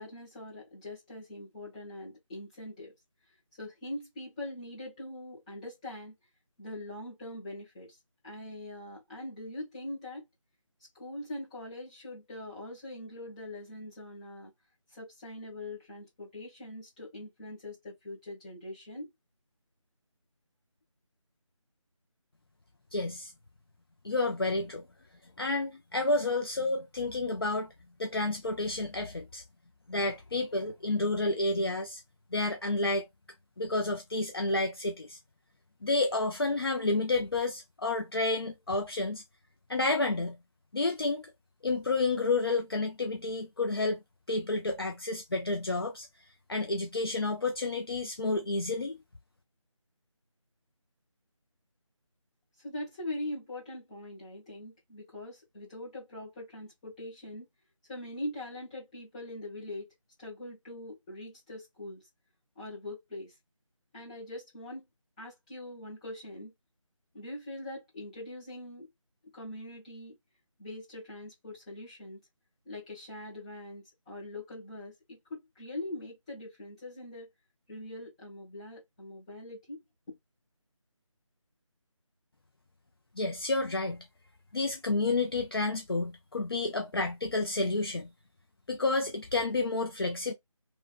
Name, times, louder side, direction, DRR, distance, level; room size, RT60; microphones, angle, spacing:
voice 1, 0.0-2.9 3.6-6.1 6.6-8.0 8.2-10.2 10.9-14.5 14.9-19.1 52.6-57.5 57.9-59.9 60.2-62.0 62.5-63.3 63.9-64.8 65.2-66.5 67.1-68.9 69.3-70.2 70.6-72.2 72.6-77.3 77.7-79.8 80.1-80.2, left 1 dB, 15° left, 1.4 m, -42 dB
voice 2, 22.9-23.3 24.0-24.8 25.4-27.7 28.0-29.4 29.9-32.0 32.3-33.0 33.6-35.2 35.8-39.2 39.7-40.4 40.7-41.2 41.6-44.0 44.3-46.1 46.5-49.0 83.2-84.0 84.5-88.1 88.7-90.3, left 2 dB, 45° left, 0.6 m, -30 dB
3.1 x 2.6 x 2.5 m
figure-of-eight pair, 170°, 17 cm